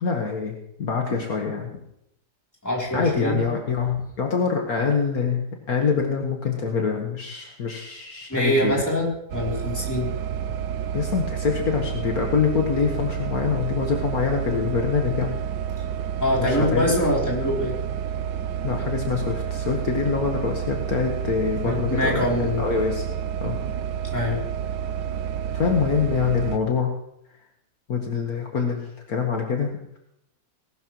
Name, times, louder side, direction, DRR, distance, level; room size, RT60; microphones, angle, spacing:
voice 1, 0.0-1.8 2.9-8.8 10.9-15.3 16.4-16.9 18.6-23.1 23.4-23.6 25.5-26.9 27.9-30.0, left 5 dB, 60° left, 2 dB, 1.8 m, -25 dB
voice 2, 2.6-3.4 8.3-10.1 16.2-17.7 21.6-22.6 24.1-24.4, left 1 dB, 10° left, -3 dB, 3.3 m, -24 dB
sound 1, 9.3-26.6, right 9 dB, 80° right, 1.3 m, -29 dB
19.0 x 12.0 x 3.1 m, 0.77 s
omnidirectional pair, 1.8 m